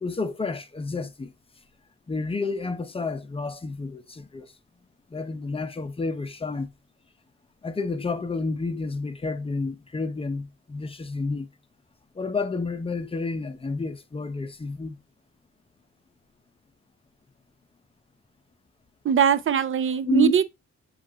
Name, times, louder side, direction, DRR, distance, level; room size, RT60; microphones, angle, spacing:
voice 1, 0.0-1.3 2.1-4.5 5.1-6.7 7.6-11.5 12.2-15.0 20.1-20.3, left 3 dB, 20° left, 0.6 m, -30 dB
voice 2, 19.0-20.4, right 8 dB, 45° right, 0.6 m, -21 dB
7.4 x 2.5 x 2.8 m
cardioid pair, 110°, 30 cm